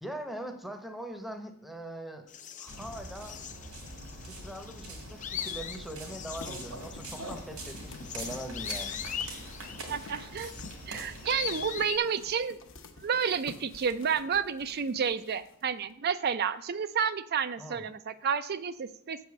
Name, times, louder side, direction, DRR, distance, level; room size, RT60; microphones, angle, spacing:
voice 1, 0.0-2.3 2.6-3.4 4.3-9.0 17.6-17.9, right 1 dB, ahead, 6 dB, 0.8 m, -41 dB
sound 1, 2.3-12.0, left 8 dB, 35° left, 0.5 m, -41 dB
sound 2, 2.7-11.7, right 2 dB, 80° right, 2.5 m, -43 dB
sound 3, 6.4-15.9, left 3 dB, 60° left, 0.9 m, -50 dB
voice 2, 9.9-10.5 10.9-12.6 13.0-19.2, right 6 dB, 45° right, 13 dB, 0.4 m, -30 dB
7.7 x 4.8 x 7.0 m, 0.69 s
head